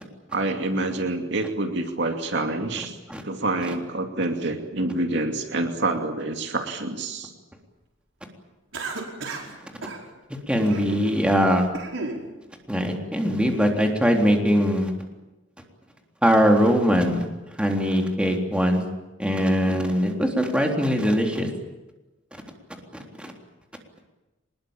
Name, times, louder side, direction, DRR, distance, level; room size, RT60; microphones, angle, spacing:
voice 1, 0.3-2.9 3.2-7.3, right 2 dB, 65° right, 5 dB, 2.6 m, -27 dB
Cough, 8.7-9.5 9.8-10.0 10.6-11.1 11.5-12.2, right 3 dB, 90° right, 5.1 m, -33 dB
voice 2, 10.5-11.7 12.7-14.9 16.2-17.2 17.6-18.8 19.2-21.5 22.3-22.4 22.9-23.3, equal, 5° right, 2 dB, 3.6 m, -21 dB
24.5 x 21.0 x 8.9 m, 1.1 s
head